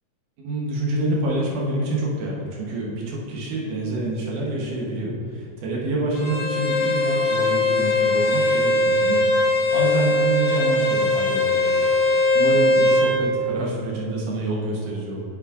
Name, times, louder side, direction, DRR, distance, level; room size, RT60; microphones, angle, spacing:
voice 1, 0.4-9.4 9.7-15.2, right 2 dB, 75° right, -3 dB, 2.7 m, -27 dB
Bowed string instrument, 6.1-13.1, left 2 dB, 75° left, 2.7 m, -20 dB
8.7 x 7.6 x 2.5 m, 2.3 s
omnidirectional pair, 3.7 m